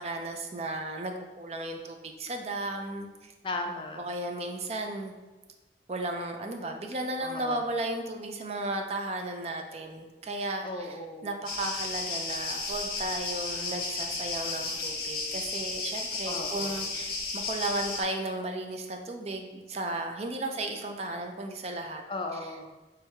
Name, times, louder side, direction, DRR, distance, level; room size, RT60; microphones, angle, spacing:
voice 1, 0.0-3.3 4.0-5.1 5.9-11.0 11.2-22.0, right 2 dB, 35° right, 4 dB, 0.4 m, -34 dB
voice 2, 3.4-4.0 7.2-7.7 10.6-11.4 16.3-16.8 22.1-22.7, left 2 dB, 30° left, 3 dB, 0.4 m, -36 dB
sound 1, 11.4-18.0, left 3 dB, 55° left, 0.8 m, -34 dB
3.5 x 3.3 x 4.7 m, 1.2 s
head